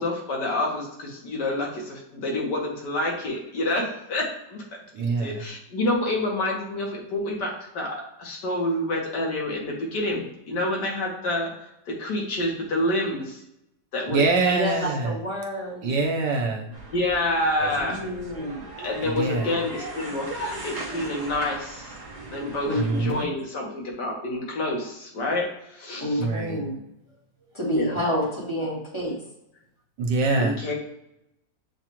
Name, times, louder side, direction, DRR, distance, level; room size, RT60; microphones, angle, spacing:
voice 1, 0.0-4.6 5.2-13.4 13.9-14.6 16.7-18.0 18.8-22.0 22.3-26.3 27.7-28.0 28.6-28.8 30.4-30.7, left 1 dB, 70° left, -1 dB, 1.7 m, -28 dB
voice 2, 4.9-5.4 14.1-15.1 15.8-16.7 19.2-19.5 22.7-23.2 26.2-26.6 30.0-30.6, right 3 dB, 75° right, 1 dB, 1.4 m, -24 dB
voice 3, 14.6-16.0 17.8-18.8 22.7-22.8 23.1-23.2 26.0-26.8 27.5-29.2, equal, 20° left, -4 dB, 1.1 m, -29 dB
sound 1, 16.7-23.2, right 2 dB, 40° right, 0.6 m, -37 dB
7.1 x 2.4 x 2.9 m, 0.82 s
omnidirectional pair, 2.0 m